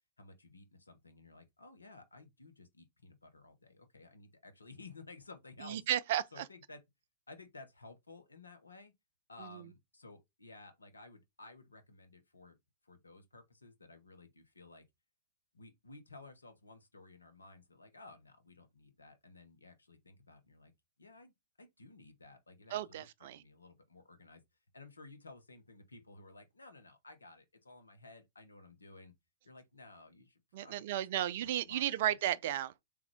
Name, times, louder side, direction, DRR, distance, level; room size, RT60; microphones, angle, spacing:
voice 1, 0.2-5.8 6.3-6.8 7.3-8.9 9.3-12.6 12.8-14.9 15.5-20.7 21.0-24.4 24.7-29.1 29.4-32.2, left 3 dB, 90° left, 1.0 m, -55 dB
voice 2, 5.6-6.5 9.4-9.7 22.7-23.4 30.5-32.8, right 12 dB, 55° right, 0.4 m, -34 dB
3.6 x 3.3 x 3.4 m
hypercardioid pair, 110°, 0 cm